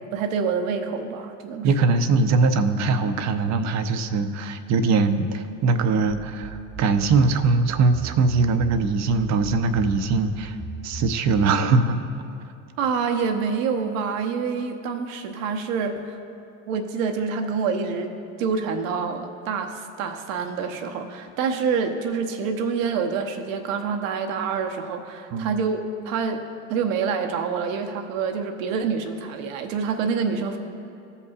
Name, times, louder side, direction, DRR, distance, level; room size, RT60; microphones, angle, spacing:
voice 1, 0.1-1.9 12.8-16.2 16.7-26.4 26.7-30.6, right 5 dB, 70° right, 5 dB, 0.9 m, -27 dB
voice 2, 1.6-10.6 10.8-12.0 25.3-25.5, right 4 dB, 40° right, 9 dB, 0.7 m, -21 dB
sound 1, 6.1-11.6, right 4 dB, 5° right, 0.9 m, -37 dB
16.5 x 5.6 x 2.4 m, 2.6 s
hypercardioid pair, 85°, 41 cm